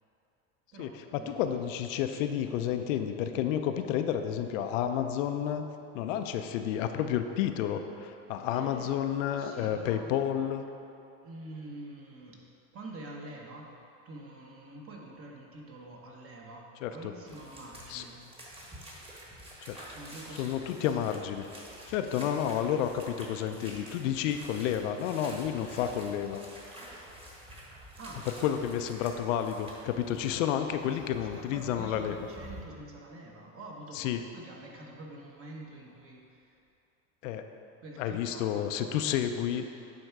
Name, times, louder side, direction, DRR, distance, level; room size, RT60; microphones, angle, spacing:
voice 1, 0.7-1.8 8.5-8.9 9.3-10.1 11.2-12.4 12.7-13.8 14.0-18.5 19.9-21.0 28.0-28.3 30.8-36.6 37.8-39.0, right 2 dB, 35° right, -1 dB, 1.3 m, -47 dB
voice 2, 1.3-5.7 5.9-10.6 16.8-16.9 17.9-18.0 19.7-19.8 20.4-21.5 21.9-26.4 28.4-32.1 34.0-34.2 37.2-37.5 38.0-39.7, left 9 dB, 85° left, 7 dB, 0.6 m, -30 dB
sound 1, 17.3-32.6, right 1 dB, 15° right, 1.4 m, -49 dB
9.2 x 3.5 x 4.7 m, 2.7 s
supercardioid pair, 110°, 38 cm